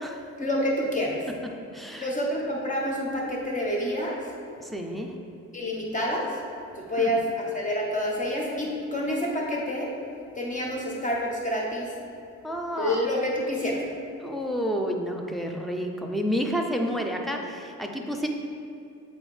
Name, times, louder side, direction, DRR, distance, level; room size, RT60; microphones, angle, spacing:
voice 1, 0.4-1.3 2.0-4.3 5.5-6.4 6.7-9.9 10.3-12.0 12.8-13.8, left 1 dB, 25° left, -3 dB, 1.4 m, -28 dB
voice 2, 1.7-2.1 4.6-5.1 7.0-7.1 12.4-13.0 14.2-18.3, equal, ahead, 2 dB, 0.7 m, -30 dB
8.3 x 4.1 x 3.3 m, 2.5 s
cardioid pair, 90°, 30 cm